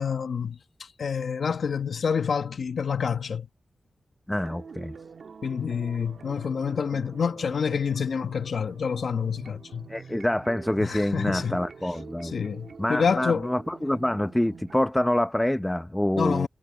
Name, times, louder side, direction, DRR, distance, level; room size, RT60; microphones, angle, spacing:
voice 1, 0.0-3.5 5.4-9.9 10.8-11.6 12.2-13.5 16.2-16.5, left 6 dB, 80° left, 1.1 m, -28 dB
voice 2, 4.3-4.9 9.9-12.3 12.8-16.5, left 1 dB, 10° left, 0.7 m, -26 dB
sound 1, 4.4-14.8, right 5 dB, 75° right, 1.9 m, -46 dB
cardioid pair, 70°, 0 cm